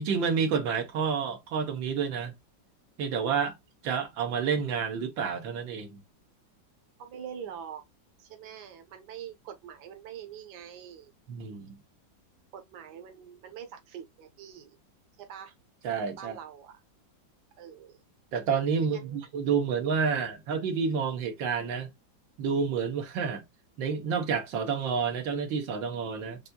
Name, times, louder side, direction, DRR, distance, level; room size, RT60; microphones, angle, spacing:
voice 1, 0.0-2.3 3.0-3.6 3.8-6.0 11.3-11.8 15.8-16.4 18.3-21.9 22.4-23.4 23.8-26.4, right 6 dB, 90° right, 1.7 m, -29 dB
voice 2, 7.0-7.8 8.2-11.1 12.5-14.8 15.2-15.5 16.2-16.7 17.6-18.0 18.8-19.2, right 8 dB, 65° right, 1.5 m, -44 dB
7.2 x 2.6 x 2.2 m
omnidirectional pair, 2.0 m